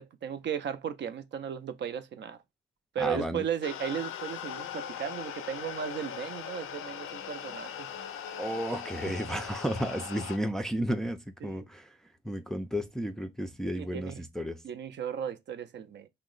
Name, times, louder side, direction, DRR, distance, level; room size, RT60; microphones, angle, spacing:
voice 1, 0.0-2.4 2.9-7.9 9.1-9.2 11.4-11.7 13.6-14.2 14.6-16.1, right 8 dB, 60° right, 0.4 m, -35 dB
voice 2, 3.0-3.4 8.4-11.9 12.2-14.6, equal, ahead, 0.4 m, -33 dB
sound 1, 3.6-10.4, left 9 dB, 80° left, 0.5 m, -40 dB
2.8 x 2.0 x 3.8 m
cardioid pair, 95°, 21 cm